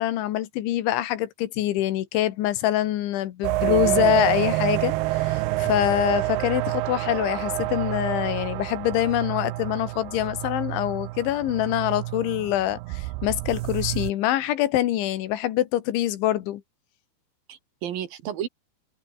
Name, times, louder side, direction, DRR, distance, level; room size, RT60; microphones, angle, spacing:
voice 1, 0.0-16.6, left 14 dB, 90° left, 4.0 m, -25 dB
sound 1, 3.4-14.1, right 19 dB, 85° right, 2.4 m, -28 dB
voice 2, 3.6-4.1 17.5-18.5, right 10 dB, 60° right, 3.2 m, -32 dB
omnidirectional pair, 5.2 m